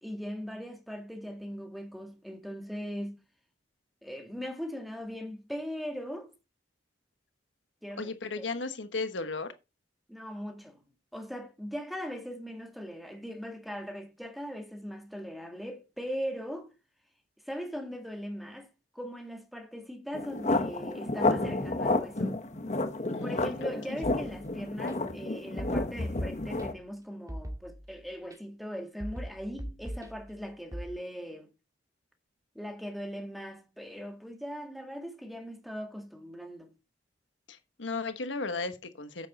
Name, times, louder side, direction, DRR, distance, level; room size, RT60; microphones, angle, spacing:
voice 1, 0.0-3.2 4.0-6.3 7.8-8.5 10.1-10.8 11.1-16.7 17.5-22.4 23.2-31.5 32.6-36.7, equal, ahead, 1.8 m, -39 dB
voice 2, 8.0-9.5 23.1-23.3 23.6-23.7 37.5-39.3, left 3 dB, 85° left, 1.3 m, -35 dB
sound 1, 20.1-26.7, left 2 dB, 40° left, 1.3 m, -30 dB
sound 2, 24.0-24.9 25.6-26.9 27.3-28.4 29.0-30.9, equal, 20° right, 2.4 m, -41 dB
9.5 x 8.0 x 4.1 m
head